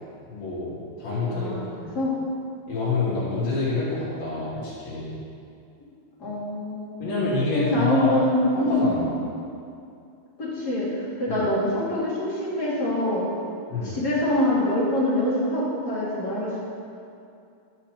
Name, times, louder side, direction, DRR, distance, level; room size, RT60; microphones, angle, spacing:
voice 1, 0.3-1.5 1.9-2.0 2.7-5.1 7.0-8.1 8.6-9.1 11.3-11.4 13.7-14.0, left 3 dB, 90° left, -10 dB, 4.4 m, -27 dB
voice 2, 1.3-2.1 5.8-5.9 6.2-6.9 7.5-9.1 10.4-13.2 13.8-16.6, left 1 dB, 30° left, -7 dB, 2.9 m, -25 dB
12.5 x 5.8 x 6.7 m, 2.5 s
omnidirectional pair, 4.0 m